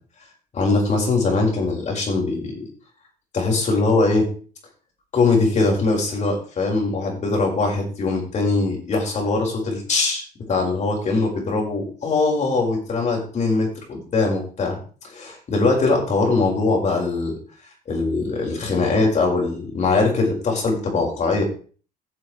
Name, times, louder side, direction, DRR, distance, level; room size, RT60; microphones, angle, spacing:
voice 1, 0.5-2.6 3.3-4.3 5.1-10.2 10.5-17.4 17.9-21.4, left 3 dB, 45° left, 0 dB, 5.2 m, -21 dB
15.5 x 7.2 x 3.3 m, 0.39 s
cardioid pair, 110°, 17 cm